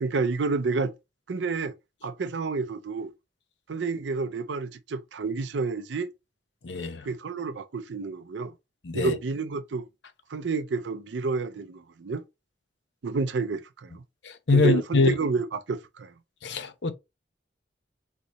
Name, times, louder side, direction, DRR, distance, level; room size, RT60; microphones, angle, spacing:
voice 1, 0.0-0.9 1.3-1.7 2.0-3.1 3.7-6.1 7.0-8.5 8.9-9.8 10.3-12.2 13.0-14.0 14.5-16.1, right 4 dB, 75° right, 0.5 m, -29 dB
voice 2, 6.6-7.1 8.8-9.2 14.2-15.1 16.4-16.9, left 3 dB, 70° left, 0.7 m, -24 dB
3.8 x 3.0 x 3.9 m
head